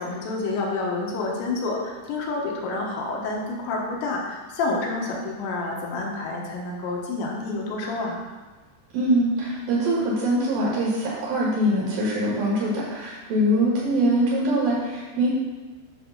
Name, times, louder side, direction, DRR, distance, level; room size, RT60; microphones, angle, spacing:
voice 1, 0.0-8.2, left 3 dB, 75° left, -2 dB, 3.3 m, -28 dB
voice 2, 8.9-15.3, right 1 dB, 60° right, -6 dB, 2.9 m, -23 dB
9.1 x 3.4 x 6.5 m, 1.3 s
omnidirectional pair, 5.6 m